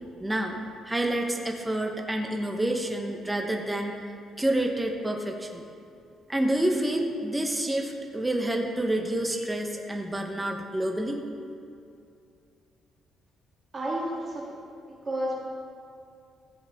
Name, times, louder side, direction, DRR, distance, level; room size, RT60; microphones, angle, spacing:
voice 1, 0.2-0.6 0.9-3.9 4.4-5.6 6.3-11.2, right 1 dB, 10° right, 2 dB, 1.0 m, -28 dB
voice 2, 13.7-14.5 14.9-15.3, right 1 dB, 25° right, -5 dB, 2.8 m, -31 dB
15.0 x 7.8 x 3.6 m, 2.5 s
cardioid pair, 130°, 0 cm